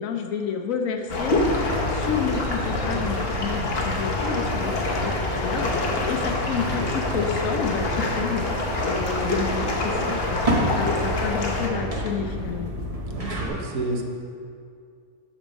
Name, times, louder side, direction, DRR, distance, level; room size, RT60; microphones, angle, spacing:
voice 1, 0.0-1.3 1.9-8.4 8.8-12.7, left 6 dB, 70° left, 4 dB, 1.1 m, -30 dB
sound 1, 1.1-11.7, left 2 dB, 45° left, 1.1 m, -27 dB
sound 2, 1.3-13.5, equal, 25° right, 1.0 m, -30 dB
voice 2, 13.1-14.0, right 2 dB, 75° right, 2 dB, 1.4 m, -29 dB
8.4 x 5.3 x 6.3 m, 2.3 s
omnidirectional pair, 1.5 m